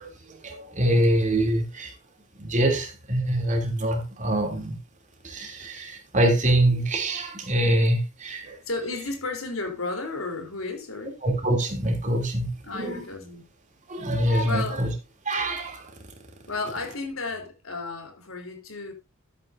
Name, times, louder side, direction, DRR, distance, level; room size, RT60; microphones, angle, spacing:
voice 1, 0.0-1.9 2.4-4.8 5.2-8.6 11.2-13.0 13.9-14.9 15.2-15.9, right 1 dB, 35° right, 3.0 m, -25 dB
voice 2, 8.7-11.2 12.6-13.4 14.0-14.1 14.4-14.9 16.5-18.9, left 3 dB, 80° left, 3.6 m, -33 dB
13.5 x 9.2 x 2.7 m
head